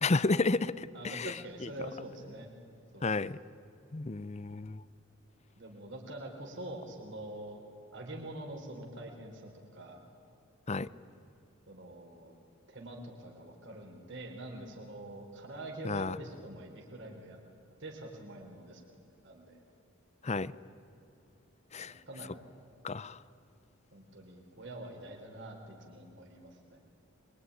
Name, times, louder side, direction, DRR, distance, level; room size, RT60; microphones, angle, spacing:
voice 1, 0.0-1.7 3.0-3.4 3.9-4.8 10.7-10.9 15.8-16.2 20.2-20.5 21.7-22.0 22.8-23.2, left 3 dB, 30° left, 17 dB, 0.6 m, -32 dB
voice 2, 0.9-2.5 2.9-3.1 5.6-7.6 7.9-10.0 11.7-12.4 12.7-17.4 17.8-19.6 21.8-22.4 23.9-26.8, right 1 dB, 60° right, 1 dB, 4.2 m, -45 dB
25.0 x 23.0 x 9.8 m, 2.7 s
head